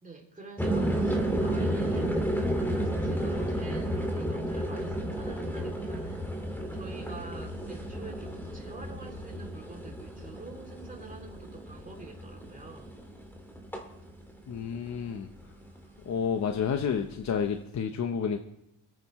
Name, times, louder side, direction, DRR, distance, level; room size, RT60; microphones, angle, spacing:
voice 1, 0.0-2.1 2.6-13.0, right 3 dB, 15° right, 1 dB, 2.8 m, -47 dB
sound 1, 0.6-15.1 15.4-16.0, right 1 dB, 5° left, 2.0 m, -32 dB
voice 2, 14.5-15.3 16.1-18.4, left 7 dB, 35° left, 6 dB, 0.9 m, -30 dB
26.0 x 9.4 x 3.2 m, 0.84 s
cardioid pair, 115°, 46 cm